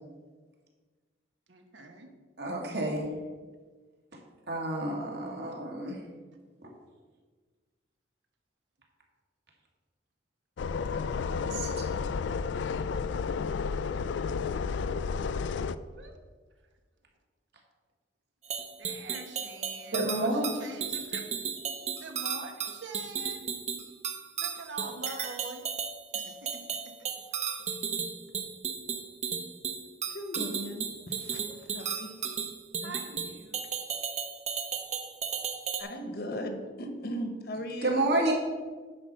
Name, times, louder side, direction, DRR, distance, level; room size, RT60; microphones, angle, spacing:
voice 1, 1.5-2.1 15.9-16.1 18.8-21.6 22.0-23.4 24.4-25.7 26.1-26.7 27.0-27.1 27.5-27.7 31.5-32.1 32.8-33.7, right 2 dB, 85° right, 5 dB, 1.1 m, -45 dB
voice 2, 2.4-3.0 4.5-6.0 6.6-6.7 11.2-11.9 19.9-20.5 37.8-38.3, right 2 dB, 60° right, -1 dB, 1.9 m, -30 dB
sound 1, 10.6-15.7, left 5 dB, 80° left, 0.4 m, -31 dB
sound 2, 18.5-35.8, right 7 dB, 40° right, 0.8 m, -34 dB
voice 3, 30.1-31.4 31.7-32.1 32.8-32.9 35.8-38.1, equal, 55° left, 6 dB, 1.1 m, -37 dB
9.8 x 4.3 x 6.6 m, 1.4 s
head